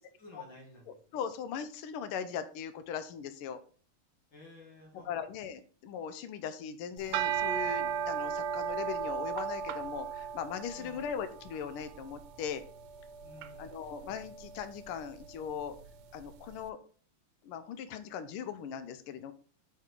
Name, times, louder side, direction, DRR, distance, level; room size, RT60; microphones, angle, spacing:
voice 1, 0.2-1.2 4.3-5.1 10.8-11.0 13.2-13.9, left 1 dB, 60° left, -1 dB, 2.5 m, -53 dB
voice 2, 0.9-3.6 5.1-12.6 13.6-15.8 16.1-16.8 17.4-19.3, left 7 dB, 85° left, 11 dB, 1.5 m, -39 dB
sound 1, 7.0-16.3, right 7 dB, 90° right, 1.5 m, -37 dB
5.7 x 3.8 x 4.4 m, 0.42 s
omnidirectional pair, 2.3 m